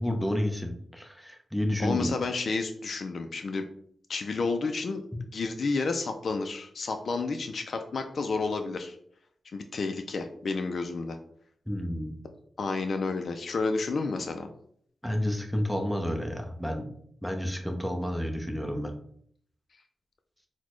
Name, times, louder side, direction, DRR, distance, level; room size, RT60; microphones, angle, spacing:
voice 1, 0.0-2.1 5.1-5.2 11.7-12.1 15.0-16.9 17.2-18.9, left 1 dB, ahead, 3 dB, 0.7 m, -30 dB
voice 2, 1.8-3.6 4.1-5.0 5.3-9.0 9.5-11.2 12.6-14.5, left 4 dB, 65° left, 5 dB, 0.3 m, -30 dB
4.0 x 2.1 x 3.0 m, 0.65 s
cardioid pair, 65°, 0 cm